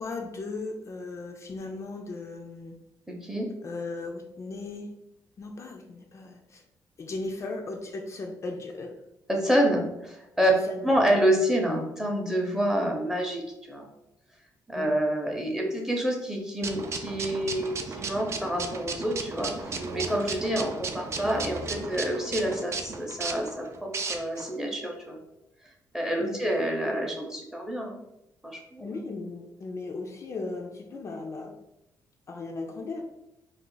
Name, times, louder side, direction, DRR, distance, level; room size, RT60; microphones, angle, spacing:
voice 1, 0.0-2.8 3.6-4.9 5.4-6.6 7.0-9.0 10.4-10.9 14.7-14.9 26.2-26.4 28.8-31.6 32.3-33.0, left 3 dB, 40° left, 2 dB, 0.3 m, -37 dB
voice 2, 9.3-10.5 10.8-13.4 13.7-13.8 14.7-25.2 25.9-28.0 28.4-28.9, equal, 5° right, 0 dB, 0.7 m, -28 dB
sound 1, 16.6-24.5, right 4 dB, 40° right, 0.4 m, -35 dB
sound 2, 19.6-20.6 20.9-22.0, right 1 dB, 75° right, 0.7 m, -41 dB
2.4 x 2.4 x 3.8 m, 0.86 s
cardioid pair, 115°, 7 cm